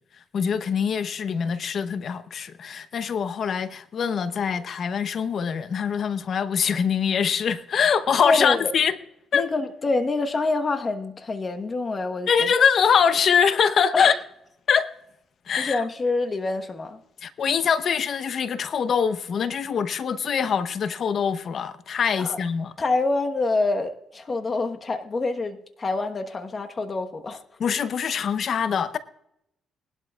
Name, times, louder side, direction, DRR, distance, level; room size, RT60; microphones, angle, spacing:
voice 1, 0.3-9.0 9.3-9.5 12.3-14.2 14.7-14.9 15.5-15.8 17.2-22.7 27.6-29.0, left 7 dB, 55° left, 0.8 m, -23 dB
voice 2, 8.2-8.7 9.3-12.5 13.9-14.1 15.6-17.0 22.2-22.4 22.8-27.4, left 3 dB, 35° left, 1.2 m, -26 dB
20.0 x 12.0 x 2.4 m
cardioid pair, 90°, 0 cm